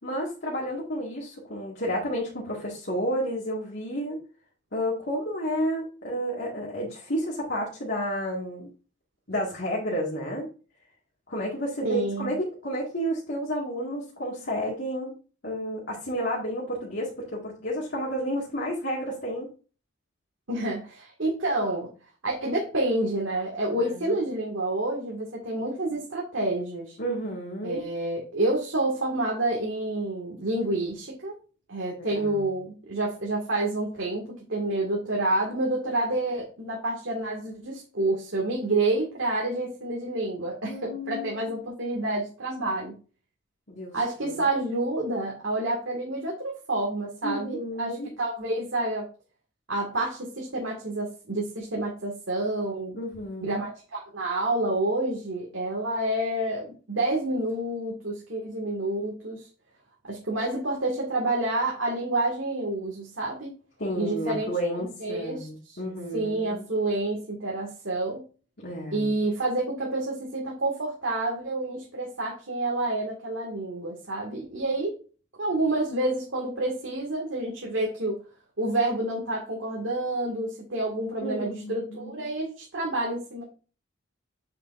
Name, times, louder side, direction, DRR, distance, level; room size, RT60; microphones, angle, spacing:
voice 1, 0.0-4.2 4.7-8.7 9.3-10.5 11.3-15.1 15.4-19.5 23.8-24.3 27.0-27.8 32.1-32.4 40.7-41.7 43.7-44.0 44.2-44.4 47.2-48.1 52.9-53.6 63.8-66.7 68.6-69.2 81.2-82.3, equal, 55° left, -5 dB, 2.0 m, -31 dB
voice 2, 11.8-12.4 20.5-21.9 22.2-27.0 27.6-31.3 31.7-42.9 43.9-49.1 49.7-53.0 53.4-59.5 60.0-63.5 63.9-65.8 66.1-68.2 68.9-75.0 75.4-78.2 78.6-83.4, right 2 dB, 80° right, -2 dB, 2.1 m, -28 dB
7.8 x 6.8 x 2.6 m, 0.35 s
head